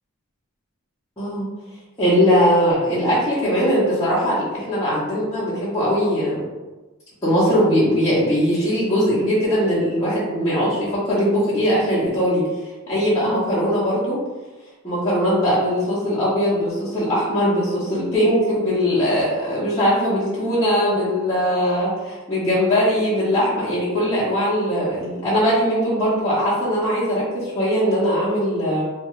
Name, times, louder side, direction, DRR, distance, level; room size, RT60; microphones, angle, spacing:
voice 1, 1.2-1.5 2.0-6.4 7.2-14.2 14.8-28.8, equal, 15° left, -13 dB, 0.7 m, -20 dB
2.3 x 2.2 x 2.9 m, 1.2 s
head